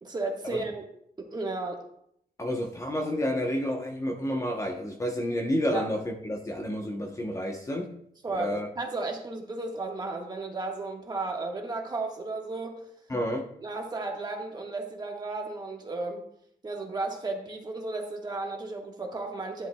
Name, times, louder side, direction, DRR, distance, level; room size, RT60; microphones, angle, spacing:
voice 1, 0.0-0.8 1.2-1.8 5.7-5.8 8.2-12.8 13.6-16.2 16.6-19.7, right 3 dB, 25° right, 1 dB, 1.5 m, -34 dB
voice 2, 2.4-7.9 8.3-8.7 13.1-13.5, equal, 20° left, 2 dB, 0.9 m, -30 dB
11.0 x 10.5 x 2.3 m, 0.71 s
wide cardioid pair, 150°, 17 cm